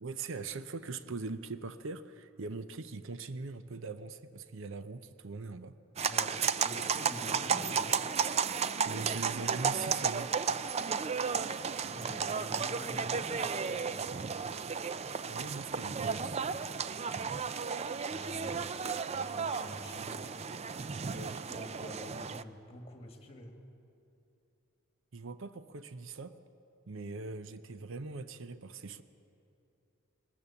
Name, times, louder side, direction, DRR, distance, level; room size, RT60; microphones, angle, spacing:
voice 1, 0.0-5.8 8.8-10.3 15.3-16.4 21.0-21.4 25.1-26.4 26.9-29.0, right 4 dB, 65° right, 12 dB, 0.7 m, -41 dB
sound 1, 6.0-22.4, right 6 dB, 30° right, 0.4 m, -33 dB
voice 2, 6.1-6.4 6.6-8.0 11.9-14.2 18.1-20.3 21.1-23.6, left 1 dB, 30° left, 4 dB, 2.1 m, -47 dB
20.5 x 19.0 x 7.1 m, 2.8 s
head